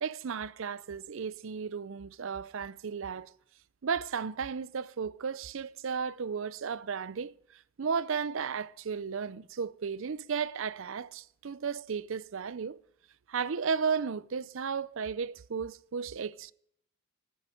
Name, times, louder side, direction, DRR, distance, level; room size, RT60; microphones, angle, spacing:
voice 1, 0.0-3.3 3.8-7.3 7.8-12.8 13.3-16.5, right 6 dB, 60° right, 0.5 m, -34 dB
16.0 x 10.0 x 6.4 m
head